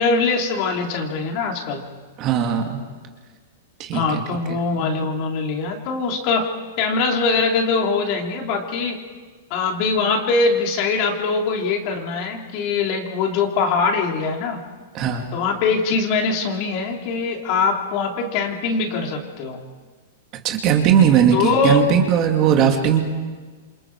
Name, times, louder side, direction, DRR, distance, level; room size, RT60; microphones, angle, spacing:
voice 1, 0.0-1.8 3.9-6.5 6.8-9.0 9.5-14.6 15.3-19.6 21.3-21.8, left 4 dB, 40° left, 2 dB, 3.1 m, -22 dB
voice 2, 2.2-2.8 3.8-4.2 4.5-4.6 14.9-15.3 20.4-23.0, right 8 dB, 30° right, 3 dB, 2.4 m, -18 dB
28.0 x 25.0 x 4.8 m, 1.4 s
supercardioid pair, 160°, 0 cm